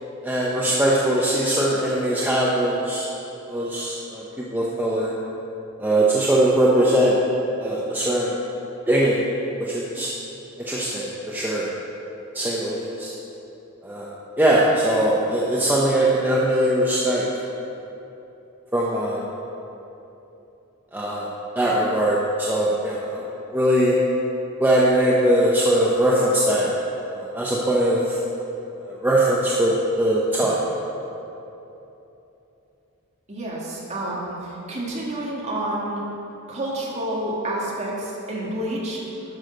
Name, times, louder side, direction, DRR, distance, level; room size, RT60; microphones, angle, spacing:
voice 1, 0.2-3.1 3.5-5.1 5.8-7.2 7.6-8.3 8.9-9.2 9.6-10.1 10.7-11.7 12.3-13.1 13.8-17.2 18.7-19.2 20.9-23.2 23.5-24.0 24.6-26.7 27.1-28.2 28.8-30.6, right 1 dB, 10° right, -5 dB, 0.8 m, -21 dB
voice 2, 33.3-36.0 36.5-39.0, right 1 dB, 35° right, -4 dB, 1.9 m, -29 dB
11.5 x 6.4 x 5.2 m, 3.0 s
head